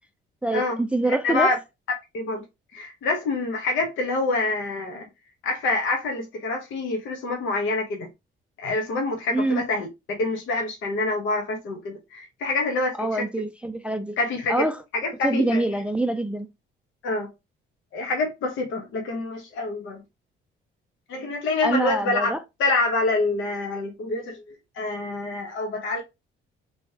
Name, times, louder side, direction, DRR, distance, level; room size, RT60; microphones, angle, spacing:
voice 1, 0.4-1.5 9.3-9.6 13.0-14.2 14.5-14.8 15.2-16.5 21.6-22.4, right 1 dB, 5° right, 0.3 m, -25 dB
voice 2, 1.1-1.6 2.1-2.4 2.7-5.1 5.4-8.1 8.6-13.4 14.2-14.7 14.9-15.6 17.0-17.3 17.9-20.0 21.1-22.3 22.6-26.0, left 2 dB, 75° left, 1.0 m, -26 dB
3.1 x 3.0 x 2.8 m
cardioid pair, 90°, 20 cm